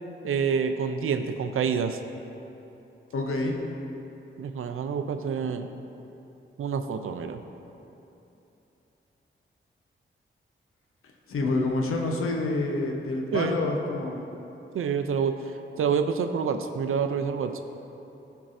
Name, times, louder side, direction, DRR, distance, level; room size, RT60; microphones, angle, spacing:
voice 1, 0.2-2.0 4.4-5.7 6.6-7.4 13.3-13.5 14.7-15.3 15.8-17.5, right 6 dB, 85° right, 8 dB, 0.4 m, -27 dB
voice 2, 3.1-3.6 11.3-14.2, left 2 dB, 90° left, 1 dB, 0.8 m, -27 dB
13.5 x 4.6 x 2.6 m, 2.9 s
cardioid pair, 70°, 21 cm